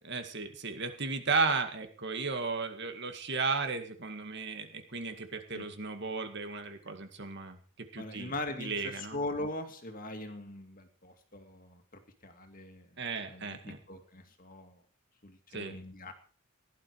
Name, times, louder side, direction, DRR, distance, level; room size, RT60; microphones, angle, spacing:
voice 1, 0.1-8.3 8.6-9.2 13.0-13.8 15.5-15.8, right 4 dB, 50° right, 7 dB, 2.1 m, -34 dB
voice 2, 8.0-11.8 12.2-13.0 13.3-14.8 15.2-16.1, left 2 dB, 40° left, 6 dB, 2.2 m, -41 dB
17.0 x 11.5 x 4.8 m, 0.42 s
head